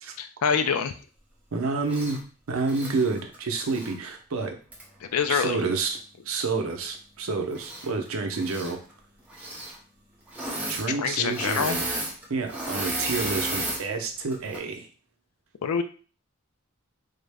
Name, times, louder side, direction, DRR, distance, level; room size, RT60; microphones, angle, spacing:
voice 1, 0.2-0.9 5.1-5.6 10.9-11.8 15.6-15.8, left 6 dB, 85° left, 10 dB, 0.4 m, -25 dB
voice 2, 1.5-2.2 2.5-4.6 5.3-6.0 6.3-8.8 10.7-11.9 12.3-14.9, right 4 dB, 75° right, 4 dB, 0.6 m, -29 dB
Engine / Mechanisms, 1.9-2.2 2.6-3.9 4.7-4.8 7.5-8.1 8.3-8.7 9.3-9.8 10.3-10.9 11.1-13.8 14.3-14.6, right 1 dB, 5° right, 0.6 m, -33 dB
3.6 x 2.1 x 3.4 m, 0.38 s
head